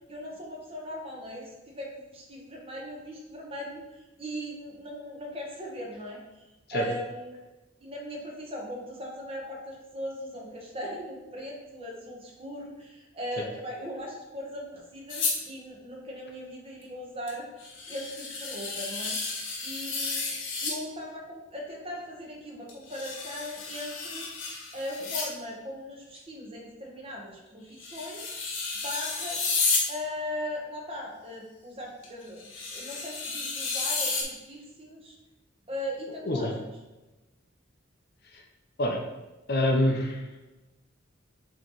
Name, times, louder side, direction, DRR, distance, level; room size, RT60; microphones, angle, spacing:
voice 1, 0.1-6.2 6.7-7.4 7.8-19.4 19.6-24.3 24.7-28.4 28.8-29.4 29.9-35.2 35.7-36.7, equal, 30° right, -2 dB, 1.4 m, -39 dB
sound 1, 15.1-15.4 17.3-17.4 17.6-20.8 22.7-25.3 26.2-26.3 27.8-29.9 32.0-32.1 32.4-34.2, left 4 dB, 80° left, 1.3 m, -32 dB
voice 2, 39.5-40.3, left 1 dB, 55° left, 1 dB, 0.9 m, -26 dB
7.7 x 3.3 x 4.1 m, 1.1 s
head